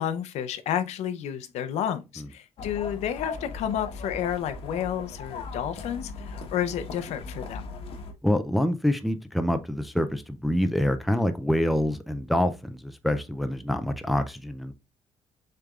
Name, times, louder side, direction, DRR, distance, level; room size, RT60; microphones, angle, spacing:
voice 1, 0.0-7.7, left 10 dB, 75° left, 0.7 m, -31 dB
sound 1, 2.6-8.1, left 3 dB, 55° left, 1.1 m, -38 dB
voice 2, 8.2-14.7, equal, ahead, 0.3 m, -26 dB
6.6 x 3.4 x 2.3 m
cardioid pair, 175°, 11 cm